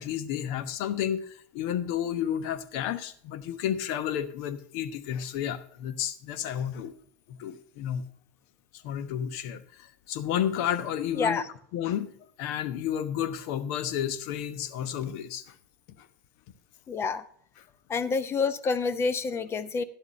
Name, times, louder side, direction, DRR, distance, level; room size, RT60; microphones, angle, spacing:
voice 1, 0.0-6.9 7.3-8.0 8.8-11.4 11.7-12.1 12.4-15.5 16.0-16.1, left 10 dB, 60° left, 13 dB, 1.0 m, -31 dB
voice 2, 16.9-17.2 17.9-19.8, left 4 dB, 30° left, 15 dB, 0.8 m, -28 dB
12.0 x 10.0 x 3.1 m, 0.62 s
hypercardioid pair, 90°, 9 cm